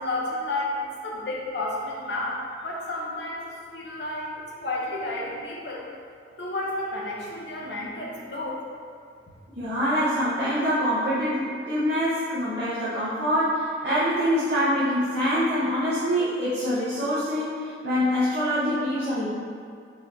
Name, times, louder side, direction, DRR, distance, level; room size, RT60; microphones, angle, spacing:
voice 1, 0.0-4.3 4.6-5.9 6.4-8.7, left 2 dB, 60° left, -3 dB, 0.7 m, -31 dB
voice 2, 9.6-19.3, equal, 60° right, -12 dB, 0.9 m, -25 dB
4.7 x 2.7 x 3.5 m, 2.3 s
head